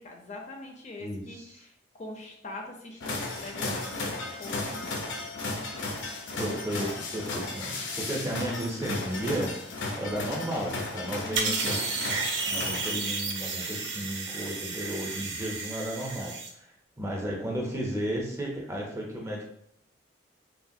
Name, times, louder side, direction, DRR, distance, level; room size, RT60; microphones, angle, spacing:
voice 1, 0.0-4.9 6.7-6.9 11.2-11.8, left 2 dB, 40° left, 2 dB, 0.4 m, -43 dB
voice 2, 1.0-1.5 6.4-9.5 9.9-11.8 12.5-19.5, right 1 dB, 15° right, -2 dB, 0.5 m, -34 dB
sound 1, 3.0-13.4, left 2 dB, 90° left, 0.6 m, -35 dB
sound 2, 11.4-16.5, right 4 dB, 80° right, 0.5 m, -32 dB
3.1 x 2.2 x 2.6 m, 0.69 s
head